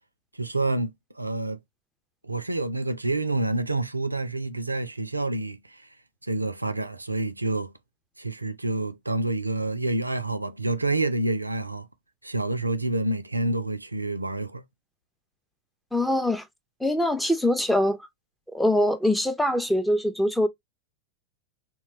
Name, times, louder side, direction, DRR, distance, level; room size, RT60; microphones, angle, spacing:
voice 1, 0.3-1.6 2.2-5.9 6.2-7.7 8.2-11.9 12.2-14.6, right 2 dB, 85° right, 0.3 m, -28 dB
voice 2, 15.9-16.4 16.8-18.0 18.5-20.5, left 1 dB, ahead, 0.4 m, -23 dB
2.8 x 2.2 x 2.9 m
figure-of-eight pair, 90°, 0 cm